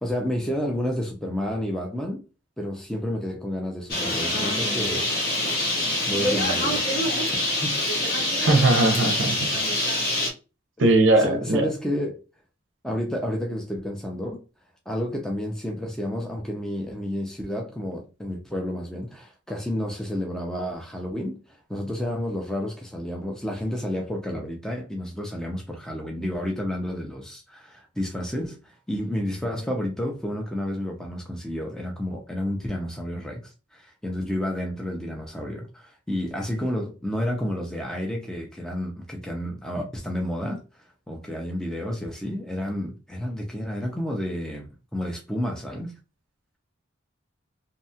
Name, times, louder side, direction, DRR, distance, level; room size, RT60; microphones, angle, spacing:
voice 1, 0.0-2.2 2.6-5.3 6.1-6.9 7.6-7.8 11.2-12.2 12.8-14.4 14.9-45.9, equal, 5° left, 0.4 m, -30 dB
Bird, 3.9-10.3, left 1 dB, 50° left, 0.8 m, -25 dB
voice 2, 8.4-9.5 10.8-11.7, right 2 dB, 65° right, 0.5 m, -19 dB
2.7 x 2.2 x 2.6 m
head